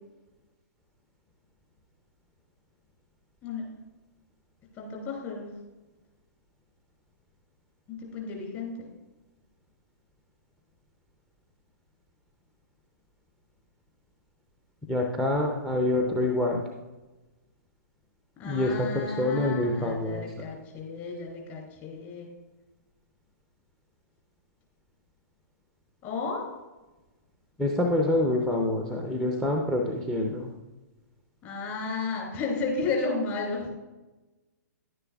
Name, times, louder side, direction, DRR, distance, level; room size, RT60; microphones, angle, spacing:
voice 1, 4.8-5.4 7.9-8.7 18.4-22.3 26.0-26.4 31.4-33.7, left 4 dB, 30° left, 0 dB, 2.8 m, -33 dB
voice 2, 14.9-16.7 18.4-20.3 27.6-30.5, left 1 dB, 5° left, 2 dB, 0.7 m, -26 dB
10.5 x 9.8 x 2.4 m, 1.1 s
figure-of-eight pair, 120°, 10 cm